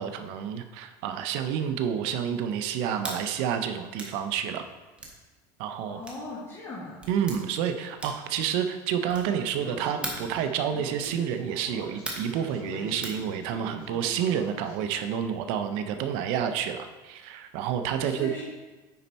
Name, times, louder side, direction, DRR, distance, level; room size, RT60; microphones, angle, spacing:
voice 1, 0.0-4.7 5.6-6.0 7.1-18.3, right 8 dB, 65° right, 7 dB, 0.6 m, -29 dB
sound 1, 3.0-3.2 4.0-4.2 5.0-5.2 6.0-6.3 7.0-7.4 8.0-8.3 9.1-9.4 10.0-10.3 11.0-11.2 12.1-12.4 13.0-13.2, right 2 dB, 10° right, 1.3 m, -37 dB
voice 2, 5.9-7.0 18.0-18.4, left 2 dB, 25° left, -8 dB, 1.8 m, -38 dB
Speech, 9.5-14.7, left 3 dB, 60° left, 2.5 m, -43 dB
9.5 x 4.4 x 4.2 m, 1.2 s
cardioid pair, 145°, 10 cm